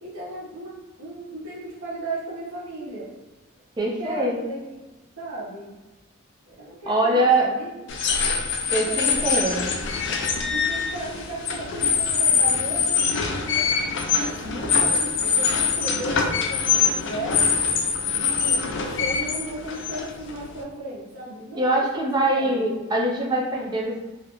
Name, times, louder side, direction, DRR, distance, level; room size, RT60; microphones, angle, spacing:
voice 1, 0.0-3.1 3.8-4.8 5.2-5.8 6.5-7.8 8.6-9.9 10.5-13.7 14.1-17.4 18.2-22.1 22.3-22.8, right 1 dB, 75° right, -7 dB, 0.6 m, -36 dB
voice 2, 3.8-4.4 6.9-7.5 8.7-9.8 21.5-24.0, right 1 dB, 20° right, -2 dB, 0.4 m, -23 dB
sound 1, 7.9-20.6, left 6 dB, 60° left, 0.3 m, -24 dB
2.4 x 2.0 x 2.9 m, 1.1 s
head